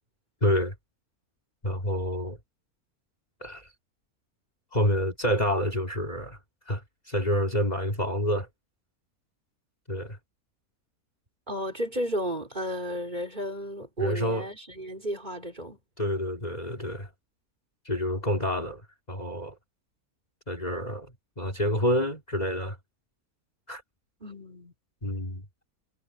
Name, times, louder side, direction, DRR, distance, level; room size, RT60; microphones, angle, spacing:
voice 1, 0.4-0.7 1.6-2.4 3.4-3.7 4.7-6.4 6.7-8.5 9.9-10.2 14.0-14.5 16.0-17.1 17.8-19.6 20.5-22.8 23.7-23.8 25.0-25.4, equal, 25° left, 2.5 m, -28 dB
voice 2, 11.5-15.8 24.2-24.7, equal, 30° right, 4.0 m, -33 dB
omnidirectional pair, 1.6 m